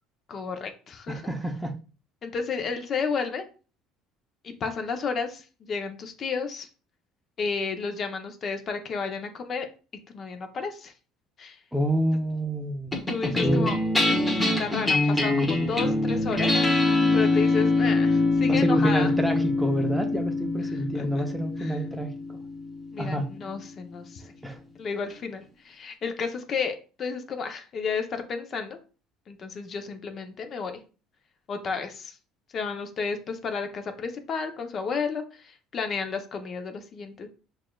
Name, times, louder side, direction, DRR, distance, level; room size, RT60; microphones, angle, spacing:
voice 1, 0.3-1.3 2.2-3.4 4.4-6.7 7.4-9.7 10.1-10.9 11.4-11.6 13.1-13.8 14.0-16.5 17.1-19.1 20.7-21.2 21.6-21.8 22.9-24.2 24.8-28.8 29.3-30.7 31.5-32.1 32.5-37.3, left 5 dB, 45° left, 6 dB, 0.7 m, -32 dB
voice 2, 1.1-1.8 11.7-12.9 13.3-13.7 18.5-22.4 23.0-23.3 24.4-24.6, right 1 dB, 5° right, 5 dB, 0.6 m, -28 dB
sound 1, 12.9-23.5, left 2 dB, 10° left, 1.3 m, -24 dB
5.9 x 2.5 x 2.3 m, 0.36 s
supercardioid pair, 90°, 0 cm